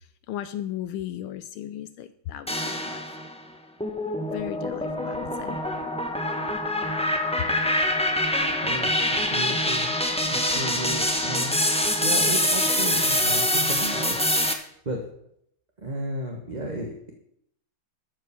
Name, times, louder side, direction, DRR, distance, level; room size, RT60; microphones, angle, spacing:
voice 1, 0.3-3.0 4.3-5.6, left 11 dB, 80° left, 12 dB, 1.4 m, -35 dB
sound 1, 2.5-3.3 3.8-14.5, left 1 dB, 5° left, 0.4 m, -25 dB
voice 2, 8.6-9.9 10.2-14.2 14.6-15.1 15.8-17.1, right 1 dB, 25° right, 1 dB, 1.2 m, -34 dB
13.0 x 5.3 x 7.0 m, 0.73 s
omnidirectional pair, 2.3 m